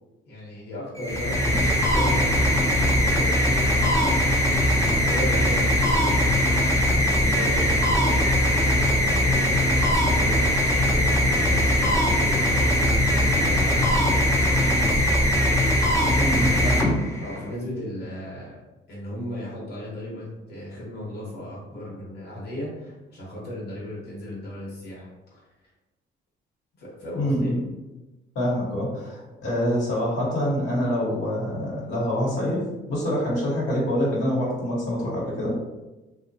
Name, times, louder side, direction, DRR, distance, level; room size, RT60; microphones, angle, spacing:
voice 1, 0.2-2.2 2.7-6.3 7.1-10.4 10.9-15.2 16.1-16.7 17.2-18.6 18.9-25.4 26.8-27.6, left 1 dB, 55° left, -6 dB, 1.0 m, -36 dB
sound 1, 1.0-17.5, left 1 dB, 15° left, 0.5 m, -21 dB
sound 2, 7.4-8.5, right 5 dB, 60° right, 0.5 m, -38 dB
voice 2, 16.2-16.8 27.1-27.6 28.3-35.6, equal, 80° left, -6 dB, 1.0 m, -26 dB
2.7 x 2.1 x 2.6 m, 1.1 s
cardioid pair, 90°, 20 cm